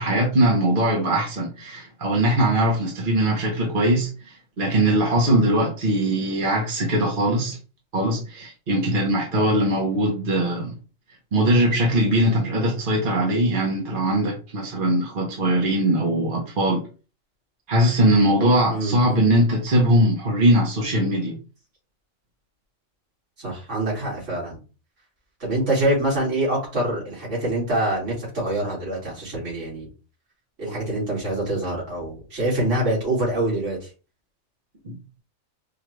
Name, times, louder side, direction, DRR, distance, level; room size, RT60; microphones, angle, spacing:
voice 1, 0.0-7.6 7.9-10.7 11.3-16.8 17.7-21.4 34.8-35.0, right 1 dB, 45° right, 1.1 m, -21 dB
voice 2, 18.7-19.2 23.4-24.6 25.4-29.9 30.6-33.8, right 1 dB, 65° right, 2.6 m, -25 dB
4.9 x 2.4 x 3.1 m
omnidirectional pair, 1.4 m